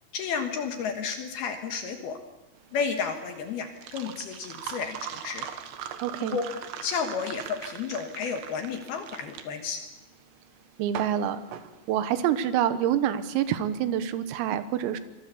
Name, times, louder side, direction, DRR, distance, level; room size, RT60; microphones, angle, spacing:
voice 1, 0.1-2.2 2.7-5.5 6.2-6.4 6.8-9.8, left 6 dB, 65° left, 5 dB, 2.7 m, -32 dB
sound 1, 2.6-12.4, right 9 dB, 70° right, 3.2 m, -41 dB
voice 2, 6.0-6.4 10.8-11.4 11.9-15.0, right 10 dB, 90° right, 11 dB, 3.9 m, -26 dB
25.5 x 22.0 x 7.0 m, 1.0 s
omnidirectional pair, 5.9 m